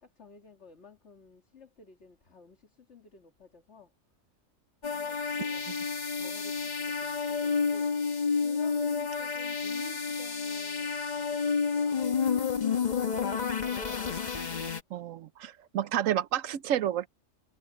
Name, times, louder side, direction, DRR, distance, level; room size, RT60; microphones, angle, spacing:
voice 1, 0.0-3.9 4.9-5.8 6.2-7.9 8.4-12.1, left 5 dB, 60° left, 2.7 m, -53 dB
sound 1, 4.8-14.8, left 5 dB, 35° left, 1.1 m, -30 dB
voice 2, 14.9-17.1, right 10 dB, 85° right, 1.1 m, -30 dB
omnidirectional pair, 1.3 m